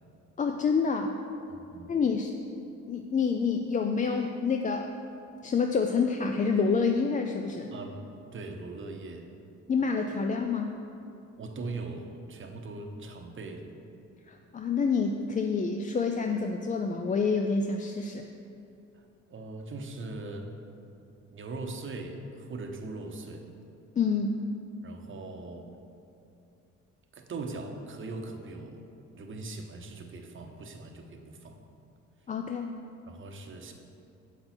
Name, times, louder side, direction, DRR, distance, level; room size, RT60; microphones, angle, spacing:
voice 1, 0.4-1.1 1.9-2.3 2.9-4.9 5.4-7.7 9.7-10.8 14.3-18.3 24.0-24.4 32.3-32.7, left 5 dB, 25° left, 4 dB, 0.4 m, -27 dB
voice 2, 1.5-1.9 7.7-9.3 11.4-13.7 18.9-20.5 21.3-23.5 24.8-25.7 27.1-28.8 29.1-31.6 33.1-33.7, right 3 dB, 40° right, 4 dB, 0.9 m, -40 dB
7.6 x 5.8 x 4.4 m, 2.6 s
cardioid pair, 90°, 30 cm